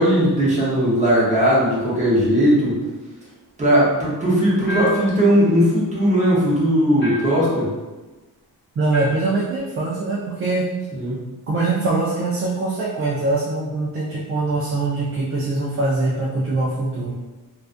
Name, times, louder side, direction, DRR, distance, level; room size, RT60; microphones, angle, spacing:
voice 1, 0.0-2.8 3.6-7.7 10.9-11.3, equal, 20° right, -7 dB, 0.8 m, -18 dB
sound 1, 4.7-5.2 7.0-7.5 8.9-9.3, left 3 dB, 30° left, 1.0 m, -30 dB
voice 2, 8.8-10.7 11.5-17.2, right 2 dB, 40° right, -5 dB, 0.4 m, -23 dB
2.4 x 2.4 x 2.4 m, 1.2 s
wide cardioid pair, 160°, 36 cm